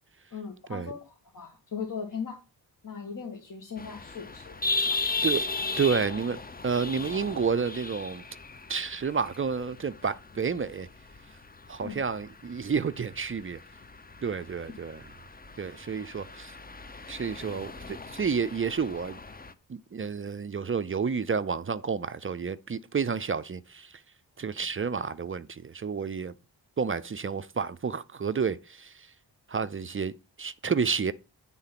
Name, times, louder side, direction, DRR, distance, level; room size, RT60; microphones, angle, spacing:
voice 1, 0.3-2.4 2.8-4.6 4.9-5.2 11.8-12.0, left 6 dB, 45° left, 1.6 m, -38 dB
sound 1, 3.8-19.5, left 3 dB, 20° left, 0.7 m, -37 dB
voice 2, 5.8-8.2 8.7-10.9 11.7-13.6 14.2-15.0 15.6-16.5 17.1-19.2 19.7-24.0 24.4-26.3 26.8-29.1 29.5-31.1, right 5 dB, 30° right, 0.4 m, -30 dB
9.3 x 3.8 x 5.8 m
cardioid pair, 75°, 43 cm